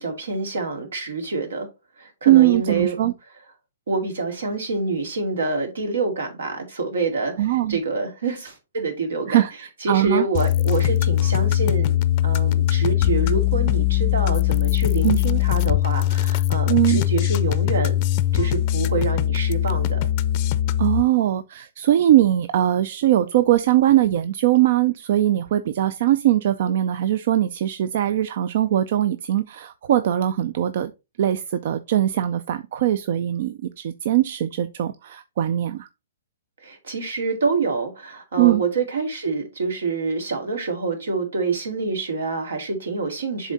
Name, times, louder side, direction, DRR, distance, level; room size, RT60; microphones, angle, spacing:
voice 1, 0.0-1.7 2.0-3.0 3.9-9.4 9.8-12.0 12.2-18.0 18.3-20.1 36.6-43.5, right 4 dB, 80° right, 2.3 m, -27 dB
voice 2, 2.3-3.1 7.4-7.8 9.3-10.2 15.0-15.2 16.7-17.0 20.8-30.9 31.2-35.9 38.4-38.6, right 13 dB, 55° right, 0.4 m, -20 dB
sound 1, 10.3-21.0, left 13 dB, 40° left, 0.5 m, -21 dB
7.1 x 3.7 x 4.1 m
hypercardioid pair, 140°, 0 cm